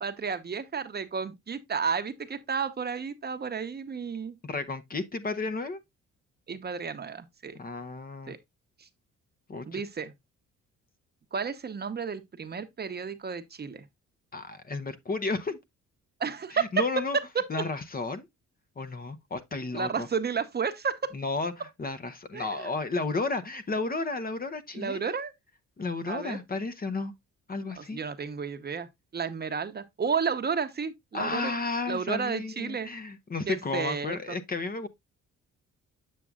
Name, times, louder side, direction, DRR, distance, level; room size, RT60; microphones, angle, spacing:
voice 1, 0.0-4.4 6.5-7.6 8.3-8.4 8.8-8.9 9.6-10.1 11.3-13.8 16.2-16.7 17.3-17.4 19.7-21.0 22.3-22.7 24.7-25.3 26.1-26.4 27.8-28.9 29.1-31.5 31.9-32.9 33.5-34.4, right 6 dB, 35° right, 0.9 m, -32 dB
voice 2, 4.4-5.8 7.5-8.3 9.5-9.8 14.3-15.6 16.5-17.2 17.5-18.3 18.8-20.1 21.1-25.1 25.8-27.1 27.5-28.0 31.1-34.9, left 3 dB, 30° left, 0.8 m, -32 dB
7.5 x 6.8 x 2.3 m
cardioid pair, 90°, 30 cm